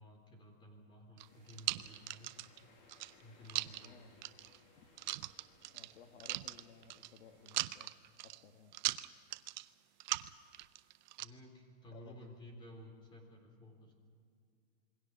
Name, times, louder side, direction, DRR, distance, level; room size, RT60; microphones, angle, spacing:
voice 1, 0.0-2.3 3.2-4.2 11.2-13.9, left 1 dB, 15° left, 3 dB, 3.6 m, -55 dB
sound 1, 1.2-2.6 2.9-3.9 4.2-4.6 5.0-5.9 6.2-7.2 7.5-8.4 8.7-9.6 10.0-11.2, right 16 dB, 40° right, 0.6 m, -39 dB
sound 2, 1.3-7.6, left 4 dB, 30° left, 2.1 m, -66 dB
voice 2, 3.6-4.1 5.7-7.9 8.2-8.8 11.9-12.3, left 6 dB, 80° left, 5 dB, 2.1 m, -58 dB
27.5 x 22.0 x 6.2 m, 2.3 s
supercardioid pair, 165°, 35 cm